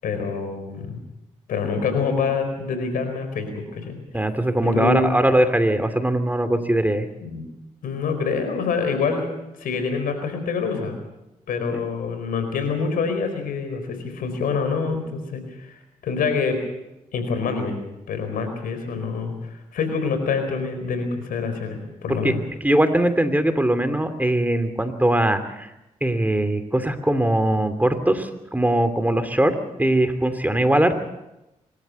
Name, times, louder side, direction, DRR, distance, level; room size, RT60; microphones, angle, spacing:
voice 1, 0.0-1.0 1.5-4.0 4.6-5.1 7.2-7.5 7.8-9.3 9.6-11.0 11.5-15.7 16.0-16.6 17.1-17.8 18.1-22.4, left 5 dB, 80° left, 8 dB, 4.5 m, -26 dB
voice 2, 4.1-7.1 11.7-11.8 22.2-22.3 22.6-25.7 26.0-29.5 29.8-30.9, right 1 dB, 10° right, 9 dB, 2.8 m, -21 dB
25.0 x 13.5 x 8.3 m, 0.93 s
supercardioid pair, 50°, 14 cm